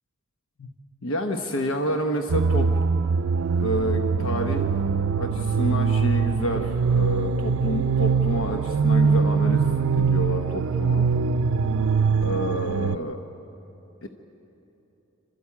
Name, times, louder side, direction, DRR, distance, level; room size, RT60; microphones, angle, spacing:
voice 1, 1.0-2.7 3.6-4.7 5.2-11.1 12.2-13.2 14.0-14.1, equal, 90° left, 4 dB, 1.1 m, -29 dB
sound 1, 2.3-13.0, right 5 dB, 90° right, 0.5 m, -23 dB
27.0 x 13.0 x 8.5 m, 3.0 s
head